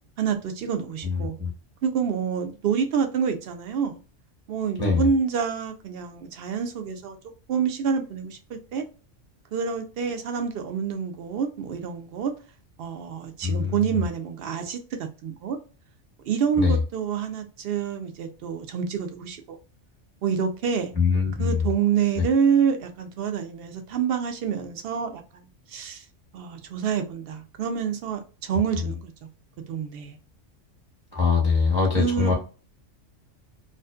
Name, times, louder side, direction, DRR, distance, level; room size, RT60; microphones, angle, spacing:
voice 1, 0.2-1.4 1.8-4.0 4.5-7.2 7.5-8.8 9.5-12.3 12.8-15.6 16.3-19.6 20.2-20.9 21.4-26.0 26.3-29.1 29.7-30.2 32.0-32.3, right 7 dB, 65° right, 0.6 m, -27 dB
voice 2, 1.0-1.5 4.8-5.1 13.4-14.0 16.6-16.8 20.9-21.6 22.2-22.3 31.1-32.3, left 5 dB, 10° right, 0.8 m, -23 dB
2.5 x 2.4 x 2.3 m
omnidirectional pair, 1.3 m